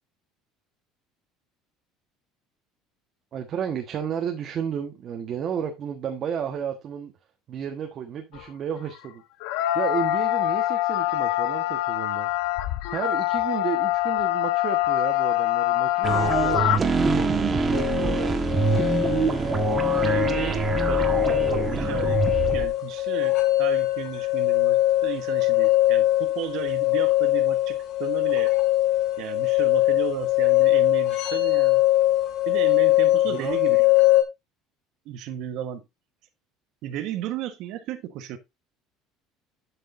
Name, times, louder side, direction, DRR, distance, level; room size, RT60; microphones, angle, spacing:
voice 1, 3.3-7.1 7.5-9.2 9.7-12.3 12.9-16.9 17.2-18.3 33.3-33.6, right 8 dB, 35° right, 1.4 m, -32 dB
sound 1, 8.3-8.4 9.4-16.8, left 16 dB, 75° left, 1.1 m, -24 dB
sound 2, 16.0-22.7, right 4 dB, 20° right, 1.4 m, -24 dB
sound 3, 17.7-34.2, left 17 dB, 50° left, 2.1 m, -22 dB
voice 2, 20.0-28.5 29.2-31.8 32.5-33.9 35.0-35.8 36.8-38.4, right 11 dB, 60° right, 1.3 m, -34 dB
11.5 x 6.6 x 2.7 m
cardioid pair, 155°, 0 cm